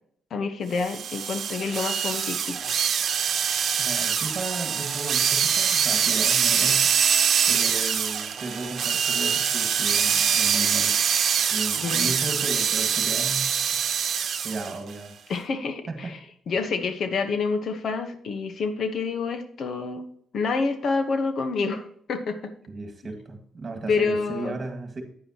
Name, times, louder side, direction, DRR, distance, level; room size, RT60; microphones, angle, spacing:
voice 1, 0.3-2.6 11.8-12.1 15.3-16.2 16.5-20.1 20.3-21.8 22.1-22.5 23.9-24.6, left 4 dB, 60° left, 9 dB, 1.1 m, -28 dB
sound 1, 0.8-14.7, right 7 dB, 60° right, 1.0 m, -24 dB
voice 2, 3.9-6.9 7.5-10.9 11.5-13.5 14.4-15.1 15.9-16.1 22.7-25.0, right 3 dB, 35° right, 5 dB, 1.9 m, -34 dB
9.3 x 8.8 x 3.0 m, 0.63 s
cardioid pair, 90°, 0 cm